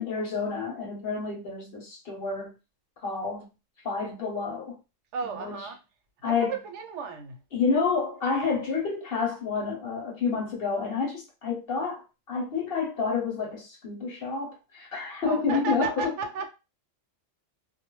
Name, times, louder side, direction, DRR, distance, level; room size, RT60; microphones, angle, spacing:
voice 1, 0.0-2.5 3.0-3.5 3.8-4.8 5.4-5.6 6.2-6.5 7.5-16.1, left 5 dB, 60° left, 0.8 m, -29 dB
voice 2, 5.1-5.8 6.3-7.4 15.2-16.5, right 5 dB, 75° right, 0.9 m, -33 dB
2.2 x 2.0 x 2.9 m
omnidirectional pair, 1.2 m